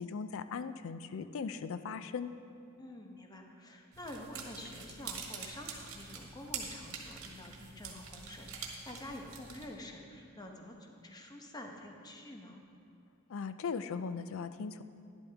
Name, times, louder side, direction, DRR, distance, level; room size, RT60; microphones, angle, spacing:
voice 1, 0.0-2.3 13.3-14.8, left 5 dB, 65° left, 12 dB, 0.4 m, -38 dB
voice 2, 2.8-12.6, left 1 dB, 20° left, 2 dB, 0.9 m, -48 dB
sound 1, 3.9-9.7, right 5 dB, 80° right, 1.5 m, -45 dB
11.5 x 11.0 x 3.4 m, 2.5 s
head